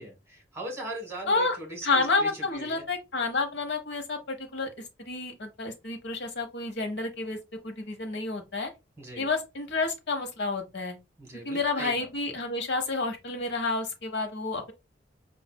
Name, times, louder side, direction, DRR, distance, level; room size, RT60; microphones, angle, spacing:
voice 1, 0.0-2.9 9.0-9.3 11.2-12.1, right 1 dB, 15° right, 1.4 m, -40 dB
voice 2, 1.8-4.7 5.1-7.4 7.6-8.7 9.2-11.0 11.4-14.7, left 3 dB, 70° left, 0.9 m, -29 dB
5.0 x 2.4 x 2.2 m
head